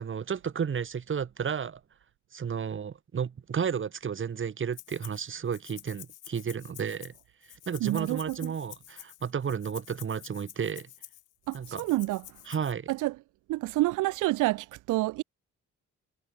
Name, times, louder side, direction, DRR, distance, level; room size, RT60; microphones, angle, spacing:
voice 1, 0.0-1.8 2.3-7.1 7.7-10.9 11.5-11.8 12.5-12.9, right 7 dB, 40° right, 2.0 m, -32 dB
Rattle (instrument), 4.7-5.2 5.5-12.7, left 15 dB, 85° left, 2.7 m, -49 dB
voice 2, 7.8-8.5 11.5-12.4 12.9-13.2 13.5-15.2, right 19 dB, 85° right, 0.6 m, -28 dB
cardioid pair, 90°, 30 cm